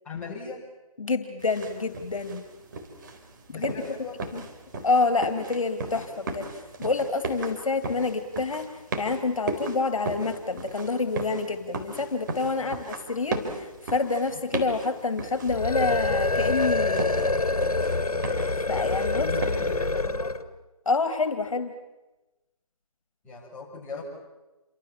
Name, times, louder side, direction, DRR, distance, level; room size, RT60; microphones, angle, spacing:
voice 1, 0.0-0.6 3.5-4.2 12.6-12.8 14.3-14.4 19.1-20.3 23.2-24.0, left 4 dB, 5° left, -5 dB, 7.1 m, -38 dB
voice 2, 1.0-2.4 3.5-3.7 4.3-4.4 4.8-6.5 6.8-8.6 9.0-17.4 18.7-19.3 20.9-21.7, left 3 dB, 65° left, 9 dB, 2.6 m, -27 dB
sound 1, 1.4-19.8, right 3 dB, 35° right, 4.2 m, -37 dB
sound 2, 15.4-20.5, left 2 dB, 85° left, 1.9 m, -26 dB
29.0 x 25.5 x 7.4 m, 1.1 s
figure-of-eight pair, 160°, 19 cm